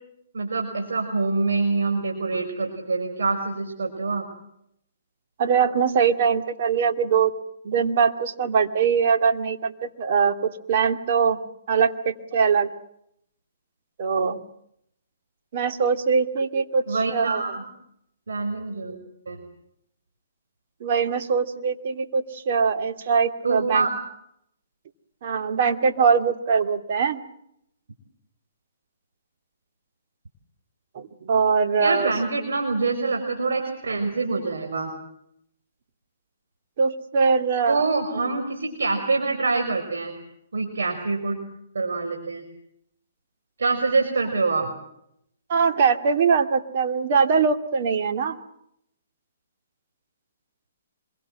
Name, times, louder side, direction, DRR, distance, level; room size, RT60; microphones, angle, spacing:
voice 1, 0.3-4.2 16.9-17.7 18.3-19.0 19.3-19.4 23.4-23.9 31.8-34.9 37.7-40.1 40.5-41.4 41.7-42.4 43.6-44.7, right 3 dB, 80° right, 3 dB, 5.4 m, -25 dB
voice 2, 5.4-7.3 7.6-11.4 11.7-12.7 14.0-14.4 15.5-17.4 20.8-23.9 25.2-27.2 30.9-32.1 36.8-37.8 45.5-48.4, right 6 dB, 50° right, 6 dB, 2.5 m, -22 dB
26.5 x 23.0 x 7.7 m, 0.75 s
hypercardioid pair, 145°, 0 cm